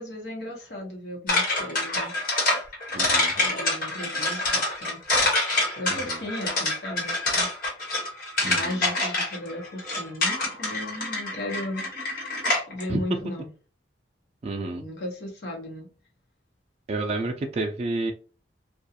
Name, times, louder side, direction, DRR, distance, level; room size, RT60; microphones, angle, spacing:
voice 1, 0.0-2.1 3.4-5.0 5.8-7.5 8.4-11.9 12.7-13.5 14.7-15.9, left 1 dB, 70° left, 0 dB, 0.9 m, -35 dB
sound 1, 1.3-12.8, left 2 dB, 55° left, 1.2 m, -26 dB
voice 2, 2.9-3.3 5.9-6.2 8.4-8.8 12.9-13.0 14.4-14.8 16.9-18.1, right 2 dB, 35° right, 3 dB, 0.3 m, -30 dB
2.4 x 2.3 x 2.7 m, 0.38 s
head